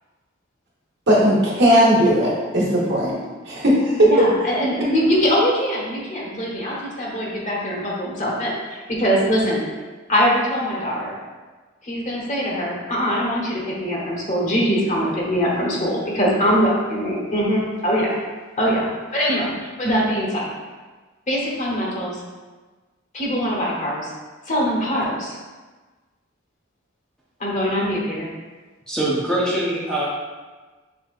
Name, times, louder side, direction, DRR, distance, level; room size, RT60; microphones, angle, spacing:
voice 1, 1.1-3.2 3.5-4.1, equal, 60° right, -5 dB, 1.3 m, -17 dB
voice 2, 4.0-9.6 10.1-11.2 11.8-18.1 18.6-20.5 21.3-22.2 23.1-24.1 24.5-25.4 27.4-28.3, equal, 40° left, -4 dB, 1.1 m, -22 dB
voice 3, 28.9-30.0, right 1 dB, 5° left, -7 dB, 0.7 m, -23 dB
5.7 x 3.6 x 2.4 m, 1.3 s
head